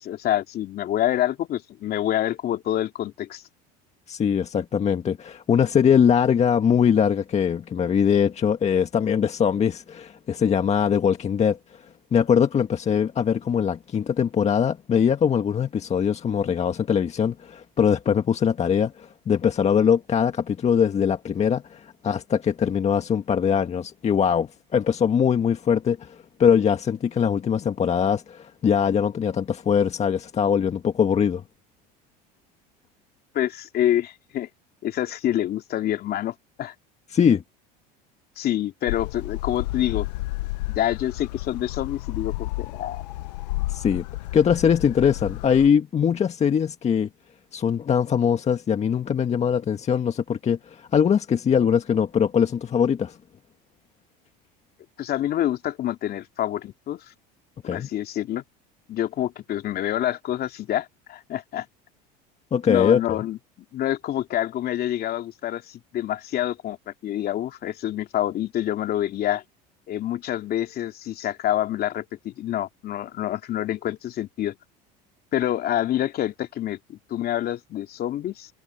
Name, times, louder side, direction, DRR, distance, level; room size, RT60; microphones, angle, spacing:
voice 1, 0.0-3.4 33.3-34.5 34.8-36.7 38.4-40.1 40.7-43.0 55.0-57.0 57.6-58.4 58.9-61.7 62.7-63.4 63.7-69.4 69.9-74.5 75.3-78.5, left 12 dB, 50° left, 2.8 m, -27 dB
voice 2, 4.1-11.8 12.1-31.4 37.1-37.4 43.7-44.1 44.3-47.1 47.5-53.2 57.6-57.9 62.5-63.0, left 7 dB, 30° left, 1.7 m, -22 dB
sound 1, 38.9-45.7, left 19 dB, 85° left, 0.8 m, -32 dB
supercardioid pair, 95°, 21 cm